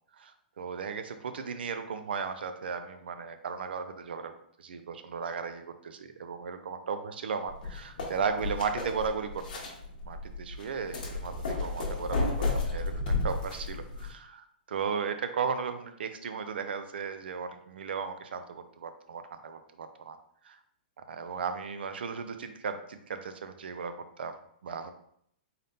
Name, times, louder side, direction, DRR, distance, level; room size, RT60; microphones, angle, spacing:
voice 1, 0.1-4.3 4.6-9.4 10.0-20.2 20.4-20.6 21.0-24.9, right 6 dB, 90° right, 9 dB, 0.4 m, -36 dB
sound 1, 7.5-14.1, left 3 dB, 55° left, 0.9 m, -33 dB
3.9 x 3.5 x 2.7 m, 0.68 s
hypercardioid pair, 180°, 5 cm